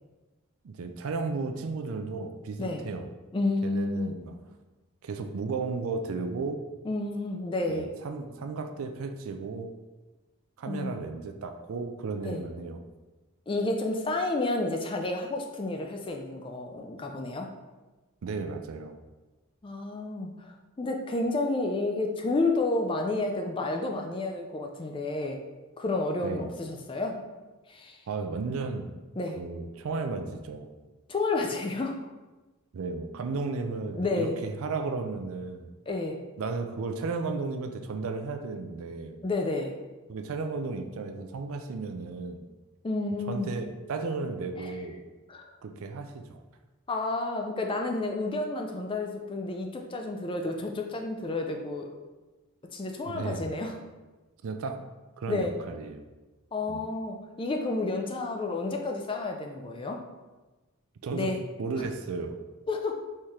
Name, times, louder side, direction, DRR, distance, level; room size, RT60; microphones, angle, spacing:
voice 1, 0.6-3.1 3.6-4.3 5.0-6.6 7.7-9.7 10.6-12.8 18.2-18.9 26.2-26.5 28.1-28.9 29.4-30.7 32.7-35.7 36.4-39.2 40.1-42.4 43.3-43.6 43.9-45.0 45.6-46.4 53.0-53.5 54.4-54.8 55.2-56.0 56.7-56.9 61.0-61.3 61.6-62.4, right 4 dB, 70° right, 6 dB, 0.4 m, -34 dB
voice 2, 3.3-4.2 6.8-7.9 10.7-11.0 12.2-12.4 13.5-17.5 19.6-25.4 25.8-27.2 27.7-28.0 29.2-29.4 31.1-32.0 33.9-34.3 35.9-36.2 39.2-39.7 42.8-43.5 44.6-44.7 45.3-45.5 46.9-51.9 52.7-53.7 55.3-55.5 56.5-60.0 61.1-61.4 62.7-63.0, left 2 dB, 25° left, 3 dB, 0.3 m, -30 dB
4.4 x 3.6 x 3.2 m, 1.2 s
head